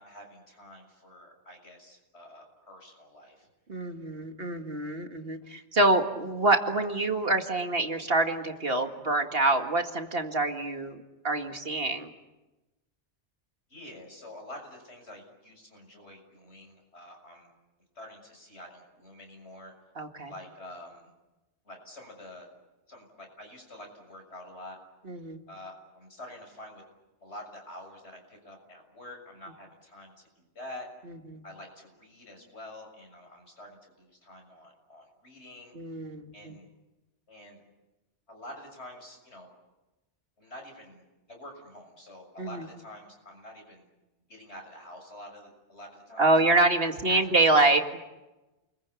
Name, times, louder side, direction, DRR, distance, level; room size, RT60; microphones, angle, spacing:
voice 1, 0.0-3.5 13.7-17.5 18.0-19.7 20.2-21.1 21.6-22.5 22.9-24.8 25.5-26.8 27.2-30.9 31.4-35.8 36.3-36.7 37.3-37.6 38.3-39.5 40.4-41.0 41.3-43.9 44.3-46.3 47.1-47.5, left 1 dB, 70° left, 3 dB, 7.1 m, -47 dB
voice 2, 3.7-11.0 11.2-12.1 20.0-20.3 25.1-25.4 31.3-31.4 35.7-36.5 42.4-42.6 46.2-47.8, right 2 dB, 55° right, 5 dB, 2.2 m, -26 dB
29.5 x 22.0 x 8.5 m, 1.0 s
omnidirectional pair, 1.2 m